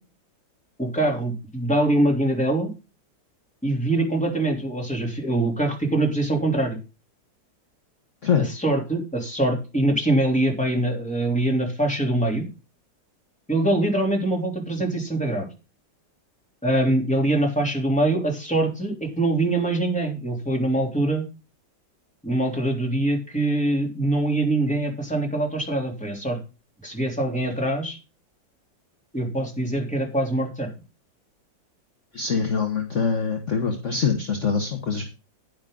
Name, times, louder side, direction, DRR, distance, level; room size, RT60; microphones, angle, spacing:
voice 1, 0.8-2.7 3.6-6.8 8.4-12.5 13.5-15.5 16.6-21.3 22.2-26.4 26.8-28.0 29.1-30.7, right 1 dB, 5° left, 0 dB, 3.2 m, -23 dB
voice 2, 32.1-35.0, left 5 dB, 45° left, 4 dB, 1.6 m, -24 dB
10.5 x 10.0 x 3.9 m, 0.30 s
omnidirectional pair, 2.0 m